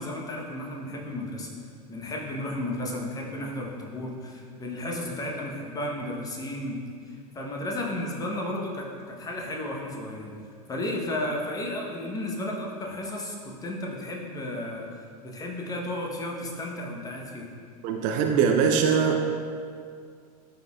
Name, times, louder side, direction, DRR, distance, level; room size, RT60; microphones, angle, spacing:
voice 1, 0.0-1.5 1.9-6.8 7.1-10.3 10.7-17.5, left 1 dB, 20° left, -1 dB, 1.0 m, -33 dB
voice 2, 17.8-19.3, right 6 dB, 40° right, 3 dB, 0.5 m, -22 dB
11.5 x 4.1 x 2.4 m, 2.2 s
figure-of-eight pair, 85°, 20 cm